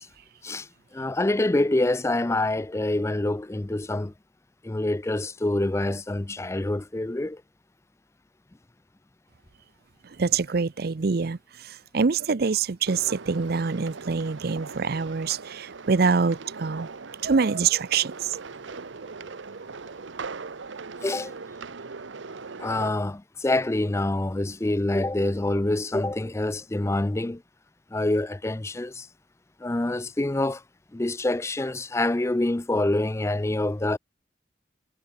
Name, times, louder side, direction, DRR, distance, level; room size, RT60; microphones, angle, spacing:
voice 1, 0.9-4.1 4.6-7.4 21.0-21.3 22.6-27.4 27.9-29.1 29.6-30.6 30.9-34.0, left 2 dB, 15° left, 0.5 m, -26 dB
voice 2, 10.0-16.9 17.2-18.4 18.7-20.1 20.4-20.5, right 5 dB, 55° right, 0.6 m, -26 dB
sound 1, 12.9-22.9, right 4 dB, 90° right, 0.9 m, -40 dB
head